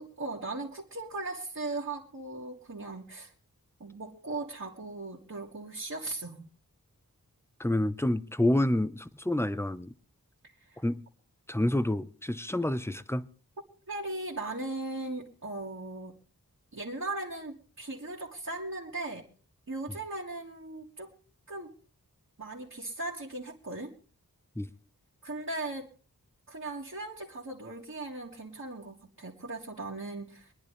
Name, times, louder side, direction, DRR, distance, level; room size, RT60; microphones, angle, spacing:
voice 1, 0.0-3.3 3.8-6.4 10.6-10.8 13.9-16.1 16.7-19.3 19.7-21.1 21.5-21.7 22.4-23.9 25.2-25.9 26.5-30.5, right 2 dB, 50° right, 2.1 m, -38 dB
voice 2, 7.6-9.9 10.8-11.0 11.5-13.3 24.6-24.7, left 1 dB, 5° left, 0.7 m, -28 dB
25.5 x 10.5 x 3.3 m
wide cardioid pair, 50°, 35 cm